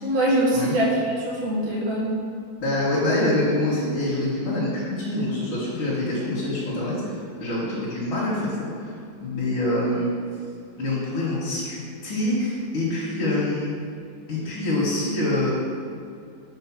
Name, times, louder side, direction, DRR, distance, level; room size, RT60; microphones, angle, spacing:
voice 1, 0.0-2.2, right 1 dB, 40° right, -6 dB, 1.4 m, -23 dB
voice 2, 2.6-8.9 9.2-10.1 10.8-13.7 14.3-15.5, left 1 dB, 90° left, -9 dB, 2.2 m, -25 dB
5.0 x 4.1 x 5.9 m, 2.5 s
omnidirectional pair, 2.2 m